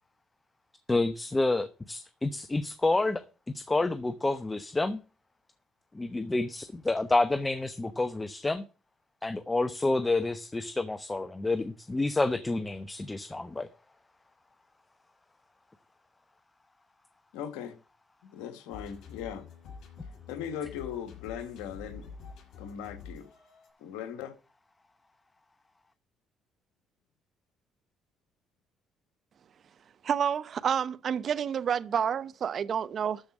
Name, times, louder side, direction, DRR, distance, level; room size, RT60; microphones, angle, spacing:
voice 1, 0.9-3.2 3.5-5.0 5.9-8.6 9.2-13.7, left 2 dB, 20° left, 0.9 m, -29 dB
voice 2, 17.3-17.7 18.2-19.5 20.3-22.1 22.6-23.3 23.8-24.3, left 9 dB, 85° left, 1.6 m, -39 dB
sound 1, 18.7-23.7, left 5 dB, 70° left, 6.2 m, -47 dB
voice 3, 30.0-33.2, right 8 dB, 55° right, 0.8 m, -29 dB
13.0 x 5.2 x 7.3 m
supercardioid pair, 75°, 0 cm